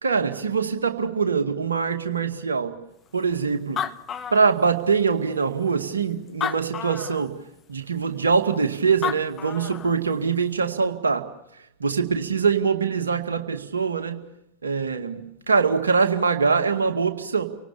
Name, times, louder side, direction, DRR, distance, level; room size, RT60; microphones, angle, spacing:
voice 1, 0.0-2.7 3.1-3.8 4.3-7.3 7.7-11.3 11.8-14.2 14.6-17.4, right 5 dB, 75° right, 6 dB, 2.1 m, -23 dB
Animal, 3.3-3.4 3.6-5.0 5.7-5.8 6.3-7.3 8.7-8.8 9.0-10.0, left 8 dB, 25° left, 1.2 m, -31 dB
29.5 x 18.5 x 7.0 m, 0.81 s
figure-of-eight pair, 90°, 0 cm